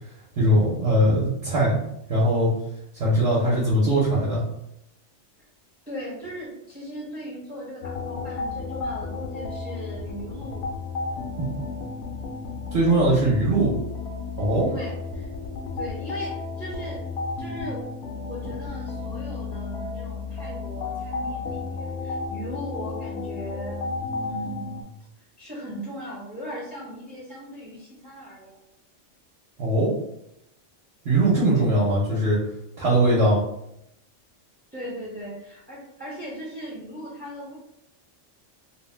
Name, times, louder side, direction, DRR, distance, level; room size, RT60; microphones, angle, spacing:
voice 1, 0.4-1.8 2.1-2.5 2.9-4.4 11.4-11.5 12.7-13.8 14.3-14.7 29.6-29.9 31.0-32.4 32.8-33.4, right 1 dB, 65° right, -7 dB, 1.0 m, -20 dB
voice 2, 5.9-10.7 14.7-15.3 15.8-17.0 17.4-17.8 18.2-24.8 25.4-28.6 31.5-31.7 34.7-37.5, equal, 15° right, -6 dB, 0.4 m, -38 dB
sound 1, 7.8-24.8, left 4 dB, 70° left, 0.8 m, -33 dB
2.6 x 2.1 x 3.2 m, 0.80 s
omnidirectional pair, 1.3 m